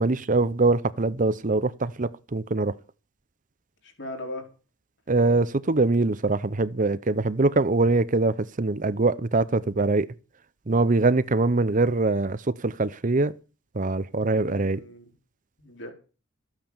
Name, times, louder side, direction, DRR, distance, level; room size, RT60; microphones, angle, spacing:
voice 1, 0.0-2.7 5.1-10.1 10.7-13.3 13.7-14.8, right 3 dB, 40° right, 0.7 m, -23 dB
voice 2, 3.8-4.4 14.4-15.1 15.6-15.9, left 1 dB, 60° left, 4.8 m, -38 dB
14.5 x 8.9 x 7.3 m
head